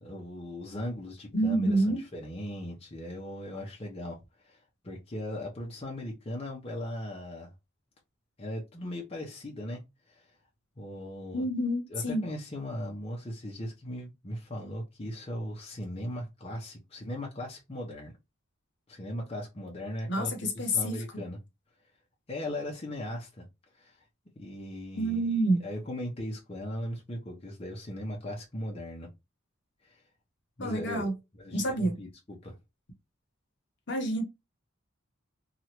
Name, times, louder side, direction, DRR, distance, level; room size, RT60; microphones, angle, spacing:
voice 1, 0.0-4.6 4.8-7.5 8.4-9.8 10.1-10.3 10.8-11.5 11.9-18.1 18.9-21.4 22.3-23.4 23.7-24.0 24.4-25.2 25.6-29.1 29.8-30.0 30.6-31.1 31.4-32.5, left 1 dB, 30° left, 0.6 m, -38 dB
voice 2, 1.3-2.0 11.3-12.2 20.1-21.0 24.9-25.6 30.6-31.1 31.5-32.0 33.9-34.2, right 1 dB, 55° left, 0.9 m, -28 dB
3.0 x 2.4 x 2.8 m
head